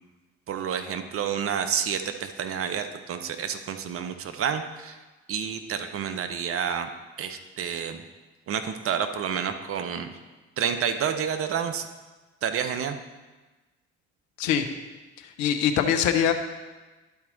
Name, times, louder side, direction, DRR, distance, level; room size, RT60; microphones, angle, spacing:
voice 1, 0.5-5.0 5.3-6.9 7.2-8.0 8.5-10.1 10.6-11.9 12.4-13.0, right 7 dB, 45° right, 8 dB, 0.7 m, -29 dB
voice 2, 15.4-16.3, left 9 dB, 60° left, 7 dB, 0.7 m, -22 dB
11.5 x 4.3 x 3.9 m, 1.2 s
figure-of-eight pair, 45°, 32 cm